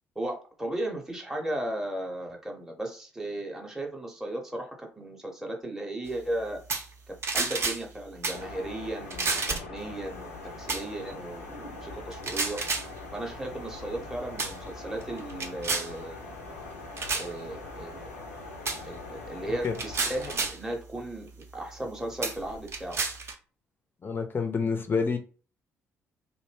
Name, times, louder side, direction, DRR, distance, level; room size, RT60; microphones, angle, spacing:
voice 1, 0.2-6.6 7.1-12.6 13.1-16.2 17.1-18.1 18.8-23.0, right 1 dB, 5° right, 1 dB, 0.8 m, -36 dB
sound 1, 6.7-6.9 7.2-7.8 8.2-8.4 9.1-9.8 10.7-10.8 12.1-12.9 13.7-14.0 14.4-14.6 15.0-15.9 17.0-17.3 18.6-18.8 19.6-20.6 21.4-21.5 22.2-23.3, right 4 dB, 40° right, 0.7 m, -30 dB
sound 2, 8.3-20.5, left 3 dB, 75° left, 0.5 m, -42 dB
voice 2, 19.4-19.7 24.0-25.2, left 5 dB, 30° left, 5 dB, 0.5 m, -28 dB
2.6 x 2.1 x 3.2 m, 0.37 s
figure-of-eight pair, 45°, 7 cm